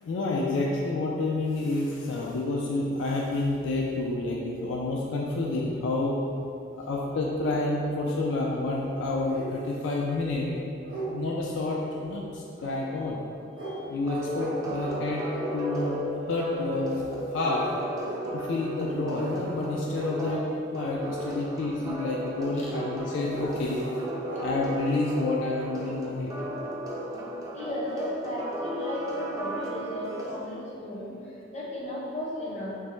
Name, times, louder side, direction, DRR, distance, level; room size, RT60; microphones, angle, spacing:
voice 1, 0.0-6.2 6.9-10.5 11.1-13.2 13.9-15.2 15.5-16.0 16.3-17.7 18.3-20.4 20.7-23.8 24.4-26.3, left 2 dB, 80° left, -2 dB, 0.3 m, -29 dB
sound 1, 9.2-9.5 10.1-10.2 10.5-11.1 12.6-12.8 13.5-13.7 14.3-14.5 14.8-15.0 15.3-15.9 17.4-17.6 18.0-18.2 19.2-19.4 19.9-20.1 22.6-22.8 23.3-23.5 23.8-24.0 24.2-24.4, right 2 dB, 50° right, 0.7 m, -38 dB
sound 2, 14.0-30.3, equal, 20° right, 0.4 m, -35 dB
voice 2, 27.5-31.1 31.5-32.8, left 1 dB, 40° left, -6 dB, 0.6 m, -34 dB
3.2 x 2.0 x 3.0 m, 2.7 s
head